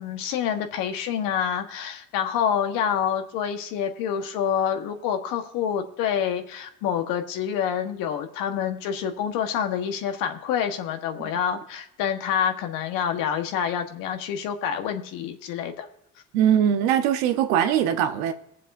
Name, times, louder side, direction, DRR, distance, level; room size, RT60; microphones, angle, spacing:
voice 1, 0.0-15.9, left 8 dB, 75° left, 1.4 m, -27 dB
voice 2, 16.3-18.3, right 9 dB, 85° right, 1.1 m, -21 dB
18.5 x 7.3 x 2.7 m
supercardioid pair, 80°, 33 cm